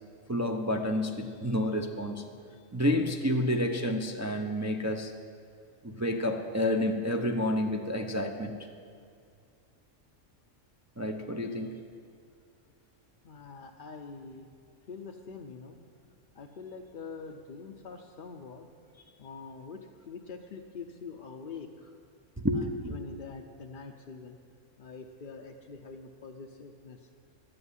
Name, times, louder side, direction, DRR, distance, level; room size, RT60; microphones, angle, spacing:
voice 1, 0.3-2.2 2.7-5.1 5.8-8.5 11.0-11.8 22.4-22.9, left 1 dB, 20° right, 3 dB, 0.5 m, -29 dB
voice 2, 13.2-14.5 14.9-15.8 16.3-18.7 19.2-22.0 22.5-24.4 24.8-27.1, left 4 dB, 50° left, 3 dB, 0.7 m, -44 dB
12.5 x 7.8 x 9.6 m, 2.3 s
omnidirectional pair, 1.3 m